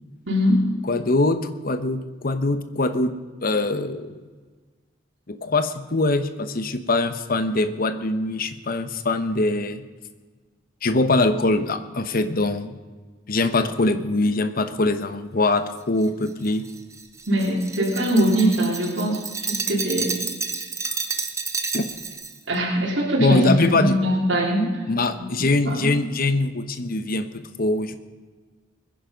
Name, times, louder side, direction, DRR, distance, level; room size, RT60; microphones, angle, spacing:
voice 1, 0.3-0.7 17.3-20.2 22.5-24.8 25.2-25.3 25.7-25.9, equal, 80° right, -5 dB, 3.6 m, -22 dB
voice 2, 0.8-3.1 3.4-4.1 5.3-9.8 10.8-12.8 13.3-16.7 21.7-21.8 23.2-23.9 24.9-28.0, left 2 dB, 50° left, 10 dB, 1.0 m, -23 dB
Glass, 16.0-22.4, right 4 dB, 15° right, 1.0 m, -30 dB
21.5 x 10.5 x 5.3 m, 1.4 s
head